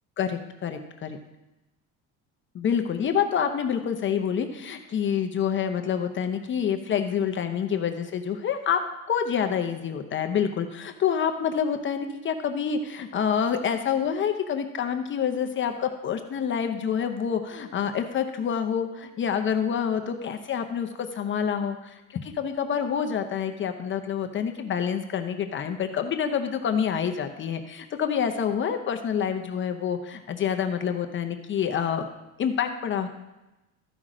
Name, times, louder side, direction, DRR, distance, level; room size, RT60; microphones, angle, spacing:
voice 1, 0.2-1.2 2.5-8.8 9.1-32.1 32.4-33.1, left 7 dB, 35° left, 6 dB, 0.7 m, -27 dB
13.5 x 5.7 x 5.0 m, 1.0 s
cardioid pair, 145°, 34 cm